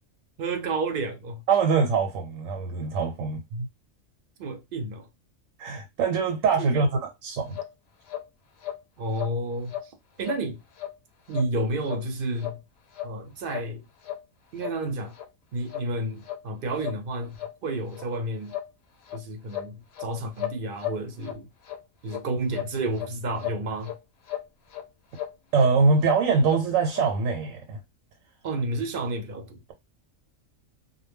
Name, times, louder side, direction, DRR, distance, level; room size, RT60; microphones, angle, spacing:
voice 1, 0.4-1.4 4.4-5.1 6.6-6.9 9.0-10.6 11.3-12.6 13.0-13.8 14.5-15.1 15.5-17.4 17.6-18.5 19.1-21.5 22.0-23.9 28.4-29.6, right 2 dB, 60° right, 0.6 m, -31 dB
voice 2, 1.5-3.7 5.6-7.6 25.5-27.8, right 5 dB, 80° right, 0.9 m, -23 dB
sound 1, 7.5-7.7 8.1-8.2 8.6-8.8 9.1-9.3 9.7-9.9 10.2-10.4 10.8-10.9 11.3-11.5 11.8-12.0 12.4-12.6 12.9-13.1 13.5-13.7 14.0-14.2 14.6-14.7 15.1-15.2 15.7-15.9 16.2-16.4 16.8-17.0 17.4-17.5 17.9-18.0 18.5-18.7 19.1-19.2 19.5-20.1 20.4-21.4 21.6-21.8 22.1-22.2 22.5-23.1 23.4-23.9 24.3-24.5 24.7-24.8 25.1-25.3 25.6-25.7 26.0-26.6 26.9-27.0, left 12 dB, 65° left, 0.7 m, -35 dB
2.1 x 2.0 x 3.3 m
omnidirectional pair, 1.3 m